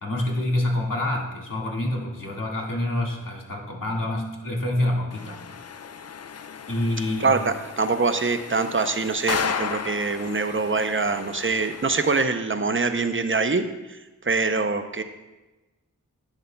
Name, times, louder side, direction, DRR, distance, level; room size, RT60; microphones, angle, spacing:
voice 1, 0.0-5.4 6.7-7.4, left 1 dB, 70° left, -2 dB, 1.8 m, -27 dB
sound 1, 5.1-12.2, left 6 dB, 50° left, 0.4 m, -34 dB
voice 2, 7.2-14.0 14.2-15.0, right 4 dB, 35° right, 9 dB, 0.6 m, -24 dB
11.0 x 7.9 x 2.2 m, 1.1 s
wide cardioid pair, 60°, 34 cm